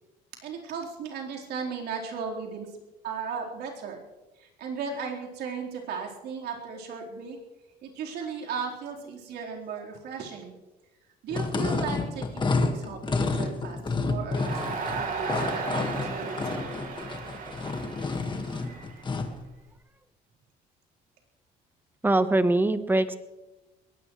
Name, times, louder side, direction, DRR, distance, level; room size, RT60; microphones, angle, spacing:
voice 1, 0.4-2.8 3.0-4.0 4.3-7.4 7.8-10.5 11.2-16.8 18.4-18.5, right 5 dB, 75° right, -2 dB, 4.3 m, -36 dB
sound 1, 11.3-19.4, left 3 dB, 25° left, 1.8 m, -30 dB
Crowd, 14.4-19.6, right 4 dB, 55° right, 3.7 m, -35 dB
voice 2, 22.0-23.2, right 2 dB, 10° right, 11 dB, 1.1 m, -23 dB
22.0 x 18.0 x 3.3 m, 1.0 s
cardioid pair, 110°, 17 cm